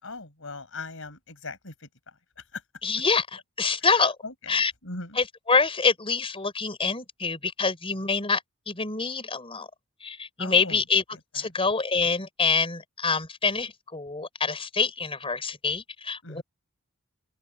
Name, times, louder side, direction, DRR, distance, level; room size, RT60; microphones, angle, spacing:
voice 1, 0.0-1.9 2.5-2.6 3.8-4.5 4.8-5.2 10.4-10.8 16.2-16.4, left 3 dB, 70° left, 5.8 m, -39 dB
voice 2, 2.8-4.2 4.5-4.7 5.1-9.7 10.0-11.0 11.3-16.4, left 4 dB, 25° left, 4.4 m, -26 dB
open air
head